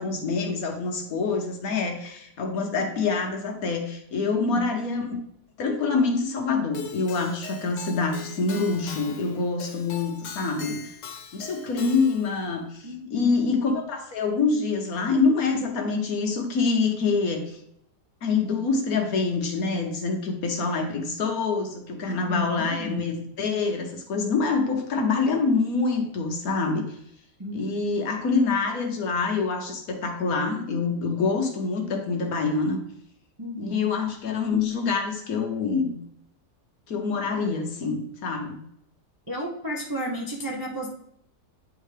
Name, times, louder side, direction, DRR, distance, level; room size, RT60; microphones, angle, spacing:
voice 1, 0.0-5.1 5.6-10.9 11.3-17.6 18.2-27.0 27.5-32.8 33.6-35.9 36.9-38.6, left 4 dB, 60° left, 3 dB, 1.3 m, -26 dB
voice 2, 4.3-4.7 12.8-13.3 22.1-23.1 27.4-27.6 33.4-33.8 39.3-40.9, equal, 35° right, -2 dB, 0.3 m, -32 dB
Keyboard (musical), 6.7-12.4, left 5 dB, 90° left, 1.4 m, -40 dB
9.1 x 3.6 x 3.3 m, 0.72 s
omnidirectional pair, 1.8 m